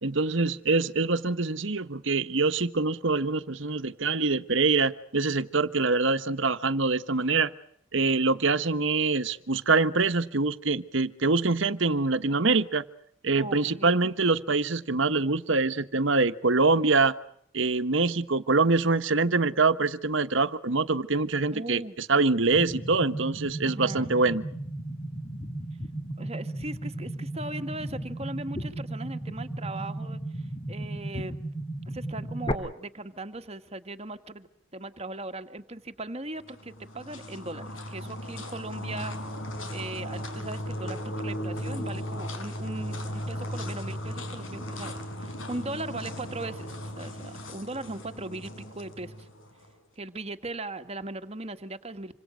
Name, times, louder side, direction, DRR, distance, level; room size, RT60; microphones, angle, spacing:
voice 1, 0.0-7.5 7.9-12.8 13.2-17.1 17.5-24.4, right 3 dB, 65° right, 11 dB, 1.3 m, -25 dB
voice 2, 13.4-14.1 21.5-22.0 23.7-24.1 26.2-31.4 31.9-39.1 39.7-49.3 50.0-52.1, right 2 dB, 30° right, 8 dB, 1.7 m, -39 dB
sound 1, 22.5-32.5, right 1 dB, 25° left, 2.5 m, -35 dB
sound 2, 36.4-49.7, equal, 75° left, 5.8 m, -36 dB
27.0 x 26.0 x 6.3 m, 0.67 s
head